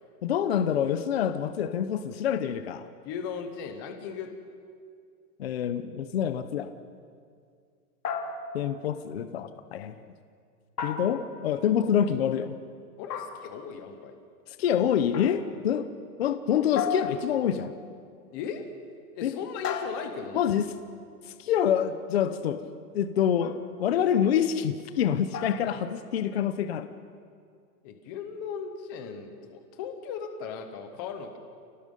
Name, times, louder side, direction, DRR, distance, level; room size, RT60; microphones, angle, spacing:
voice 1, 0.2-2.9 5.4-6.7 8.5-9.9 10.8-12.5 14.5-15.9 16.2-17.7 19.2-19.3 20.3-20.7 21.3-22.6 22.9-26.9, left 9 dB, 40° left, 10 dB, 0.7 m, -26 dB
voice 2, 3.0-4.3 13.0-14.1 18.3-18.6 19.1-20.5 27.8-31.4, left 6 dB, 15° left, 6 dB, 0.7 m, -37 dB
sound 1, 8.0-8.8 10.8-11.6 13.1-13.7 15.1-15.5 16.8-17.7 19.6-20.4 23.4-23.8 25.3-25.8, left 6 dB, 65° left, 2.7 m, -35 dB
29.0 x 18.5 x 5.4 m, 2.2 s
supercardioid pair, 180°, 49 cm